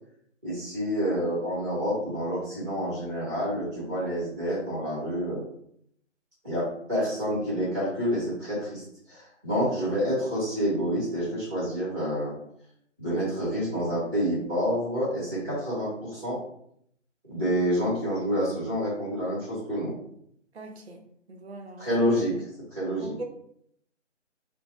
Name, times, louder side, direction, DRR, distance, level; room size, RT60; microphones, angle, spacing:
voice 1, 0.4-5.4 6.4-12.3 13.0-16.4 17.3-19.9 21.8-22.3 22.7-23.1, equal, 10° right, -11 dB, 1.0 m, -28 dB
voice 2, 20.5-21.0 21.3-21.9 23.0-23.2, right 2 dB, 60° right, 3 dB, 0.6 m, -40 dB
2.5 x 2.1 x 2.9 m, 0.70 s
figure-of-eight pair, 160°, 37 cm